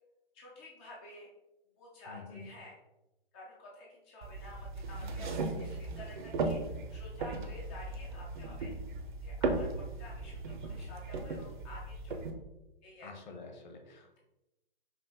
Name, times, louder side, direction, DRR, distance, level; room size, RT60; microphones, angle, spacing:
voice 1, 0.3-1.3 1.8-2.8 3.3-6.6 6.9-8.7 9.2-12.2 12.8-13.1, left 1 dB, 10° left, -3 dB, 0.3 m, -51 dB
voice 2, 2.1-2.5 5.0-5.3 13.0-14.2, left 4 dB, 50° left, 4 dB, 1.0 m, -48 dB
sound 1, 4.2-12.3, right 3 dB, 55° right, 0.7 m, -37 dB
5.2 x 2.5 x 3.5 m, 0.94 s
figure-of-eight pair, 130°, 30 cm